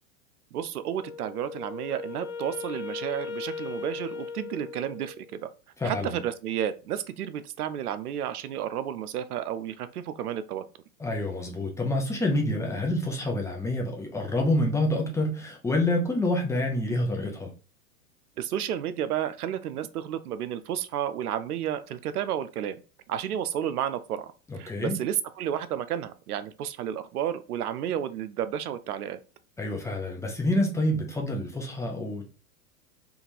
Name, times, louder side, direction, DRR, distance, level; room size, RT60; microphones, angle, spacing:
voice 1, 0.5-5.5 5.8-10.6 18.4-22.8 23.1-29.2, right 10 dB, 90° right, 0.6 m, -32 dB
Wind instrument woodwind instrument, 1.0-5.3, left 5 dB, 65° left, 1.4 m, -38 dB
voice 2, 5.8-6.2 11.0-17.5 24.5-25.0 29.6-32.3, left 1 dB, 5° left, 0.6 m, -27 dB
3.7 x 2.5 x 2.8 m
hypercardioid pair, 120°, 44 cm